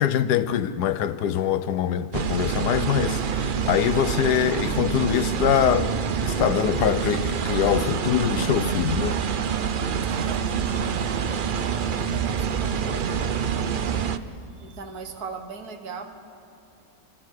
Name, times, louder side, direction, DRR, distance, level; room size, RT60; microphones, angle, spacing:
voice 1, 0.0-5.9 6.2-9.2, left 10 dB, 75° left, 1.2 m, -24 dB
sound 1, 2.1-14.2, right 7 dB, 85° right, 0.4 m, -26 dB
voice 2, 10.0-13.9 14.5-16.0, right 5 dB, 65° right, 2.0 m, -40 dB
28.5 x 24.0 x 4.8 m
omnidirectional pair, 1.8 m